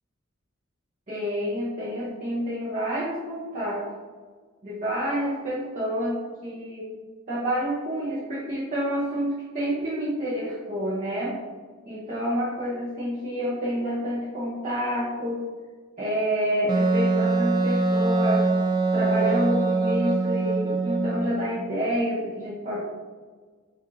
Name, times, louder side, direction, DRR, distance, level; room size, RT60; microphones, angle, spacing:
voice 1, 1.1-3.9 4.6-6.9 7.3-11.4 11.9-15.4 16.0-18.5 18.9-22.8, equal, 35° right, -8 dB, 0.9 m, -28 dB
Wind instrument woodwind instrument, 16.7-21.3, right 3 dB, 20° right, 0.3 m, -23 dB
7.1 x 2.6 x 2.7 m, 1.5 s
head